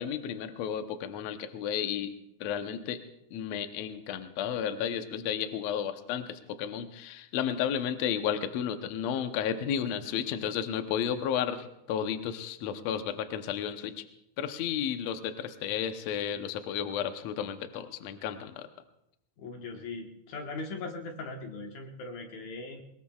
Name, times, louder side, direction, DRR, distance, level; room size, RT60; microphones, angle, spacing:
voice 1, 0.0-2.1 2.4-3.0 3.3-13.9 14.4-18.7, left 8 dB, 80° left, 8 dB, 1.5 m, -32 dB
voice 2, 19.4-22.8, left 3 dB, 60° left, 2 dB, 2.2 m, -39 dB
22.0 x 21.0 x 2.4 m, 0.79 s
omnidirectional pair, 4.4 m